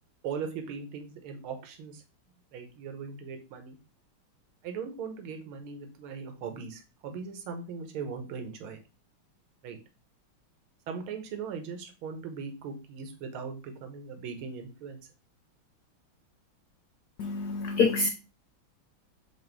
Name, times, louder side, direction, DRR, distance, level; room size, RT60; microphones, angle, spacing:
voice 1, 0.2-2.0 2.5-3.8 4.6-8.8 9.6-9.8 10.9-15.0, right 6 dB, 80° right, 5 dB, 1.9 m, -39 dB
voice 2, 17.2-18.1, left 4 dB, 80° left, 7 dB, 0.9 m, -26 dB
7.8 x 2.7 x 4.5 m, 0.31 s
omnidirectional pair, 2.3 m